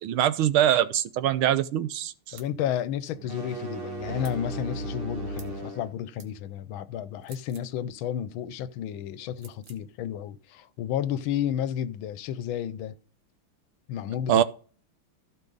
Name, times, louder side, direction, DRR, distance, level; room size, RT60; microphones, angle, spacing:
voice 1, 0.0-2.4 14.3-14.4, right 11 dB, 85° right, 1.5 m, -23 dB
voice 2, 2.3-13.0 13.9-14.4, left 10 dB, 75° left, 1.5 m, -32 dB
sound 1, 2.4-2.6 4.2-4.4 5.4-5.6 6.2-6.3 7.2-7.7 9.4-9.8, right 6 dB, 55° right, 1.7 m, -51 dB
sound 2, 3.1-5.9, right 1 dB, 30° right, 1.5 m, -35 dB
15.0 x 5.1 x 3.9 m
omnidirectional pair, 2.3 m